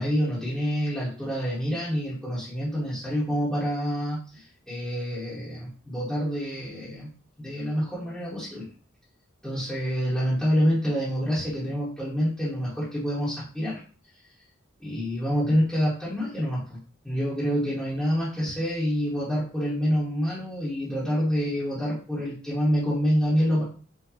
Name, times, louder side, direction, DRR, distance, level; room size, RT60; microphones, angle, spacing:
voice 1, 0.0-7.1 7.4-8.6 9.4-13.8 14.8-16.8 17.0-23.6, equal, 5° left, -11 dB, 1.4 m, -27 dB
6.0 x 2.5 x 2.9 m, 0.39 s
head